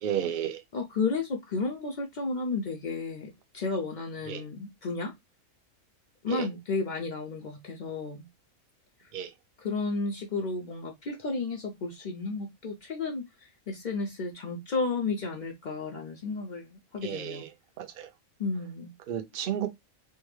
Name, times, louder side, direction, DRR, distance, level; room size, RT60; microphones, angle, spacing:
voice 1, 0.0-0.6 4.3-4.4 6.3-6.5 9.1-9.3 17.0-17.5 17.8-18.1 19.1-19.7, right 10 dB, 55° right, 0.6 m, -32 dB
voice 2, 0.7-5.1 6.2-8.3 9.6-17.4 18.4-18.9, left 4 dB, 75° left, 0.4 m, -33 dB
3.3 x 2.1 x 3.1 m
omnidirectional pair, 1.5 m